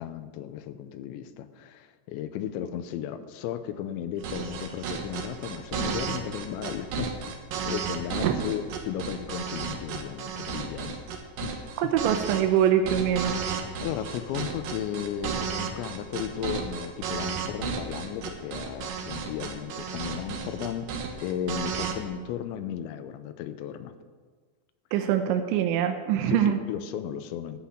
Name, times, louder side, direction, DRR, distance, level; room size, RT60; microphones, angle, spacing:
voice 1, 0.0-7.4 7.6-11.1 11.4-11.7 13.8-23.9 26.3-27.6, left 9 dB, 85° left, 10 dB, 3.0 m, -35 dB
sound 1, 4.2-22.0, right 6 dB, 65° right, 2.3 m, -33 dB
voice 2, 11.8-13.4 24.9-26.6, right 9 dB, 85° right, 6 dB, 3.0 m, -24 dB
14.0 x 5.8 x 8.6 m, 1.5 s
omnidirectional pair, 5.2 m